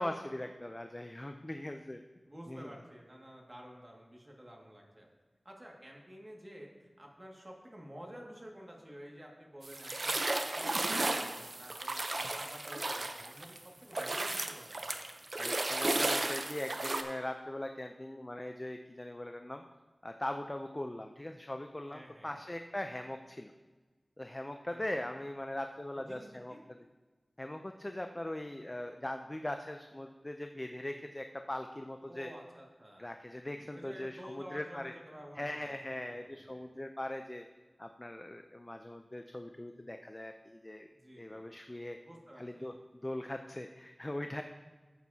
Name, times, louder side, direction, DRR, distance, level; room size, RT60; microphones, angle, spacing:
voice 1, 0.0-2.0 2.5-2.7 15.4-19.6 20.0-23.5 24.2-26.5 27.4-32.3 33.0-34.9 35.4-37.5 37.8-40.9 41.2-42.0 42.4-44.4, left 1 dB, 25° left, 5 dB, 0.5 m, -40 dB
voice 2, 2.3-5.1 5.4-10.2 10.6-15.0 21.9-22.4 24.7-24.9 25.9-26.6 32.1-33.1 33.7-36.7 40.9-41.4 42.0-42.7 44.3-44.4, equal, 30° right, -1 dB, 2.0 m, -51 dB
sound 1, 9.6-13.6 13.9-17.0, right 2 dB, 55° right, 0.7 m, -34 dB
13.5 x 8.1 x 2.8 m, 1.3 s
wide cardioid pair, 65°, 0 cm